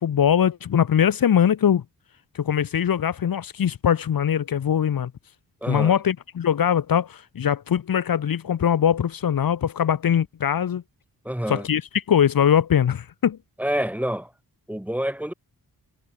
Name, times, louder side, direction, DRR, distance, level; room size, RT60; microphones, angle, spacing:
voice 1, 0.0-1.8 2.3-5.1 5.7-10.8 11.5-13.4, left 9 dB, 65° left, 1.7 m, -21 dB
voice 2, 5.6-6.0 11.2-11.7 13.6-14.3 14.7-15.3, equal, 5° right, 4.3 m, -27 dB
wide cardioid pair, 115°, 37 cm